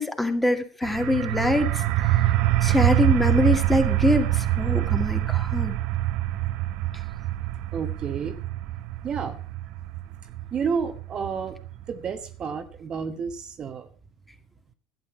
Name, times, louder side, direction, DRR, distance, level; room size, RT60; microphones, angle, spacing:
voice 1, 0.0-1.7 2.0-2.3 2.6-5.7, left 1 dB, 5° left, 6 dB, 2.1 m, -24 dB
sound 1, 0.8-12.3, right 15 dB, 65° right, 0.8 m, -25 dB
voice 2, 7.7-8.4 9.0-9.4 10.5-11.6 11.9-13.9, right 6 dB, 40° right, 8 dB, 1.3 m, -30 dB
12.0 x 8.9 x 5.9 m, 0.41 s
hypercardioid pair, 75°, 2 cm